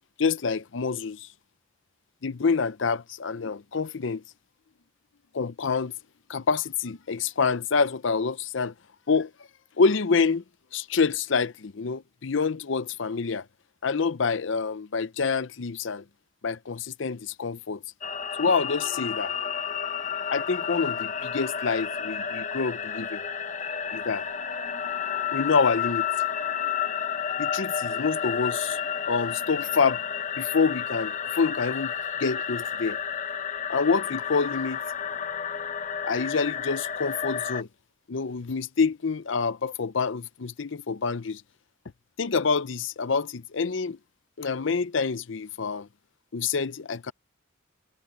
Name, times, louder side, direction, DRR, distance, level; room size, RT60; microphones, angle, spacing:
voice 1, 0.2-1.3 2.2-4.2 5.3-5.9 6.3-8.7 9.1-9.3 9.8-10.4 10.7-13.5 13.8-16.0 16.4-17.8 18.4-19.3 20.3-23.2 23.9-24.3 25.3-26.1 27.4-28.8 29.1-30.0 30.4-31.9 32.2-33.0 33.7-34.8 36.0-37.7 38.1-41.4 42.2-44.0 44.4-45.9 46.3-47.1, left 5 dB, 65° left, 0.6 m, -27 dB
sound 1, 18.0-37.6, left 7 dB, 35° left, 0.8 m, -31 dB
head